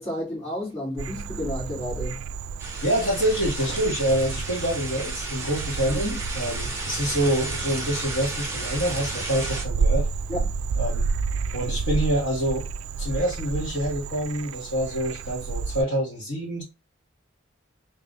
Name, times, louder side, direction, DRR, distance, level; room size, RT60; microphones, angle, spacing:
voice 1, 0.0-2.2 6.0-6.1 10.3-10.5, left 1 dB, 30° left, 2.5 m, -31 dB
Frog, 1.0-15.8, right 5 dB, 85° right, 0.3 m, -31 dB
sound 1, 2.6-9.6, right 2 dB, 15° right, 0.9 m, -33 dB
voice 2, 2.8-10.1 10.8-11.1 11.5-12.7 13.0-16.6, equal, 60° left, 1.8 m, -26 dB
4.0 x 3.3 x 2.4 m
head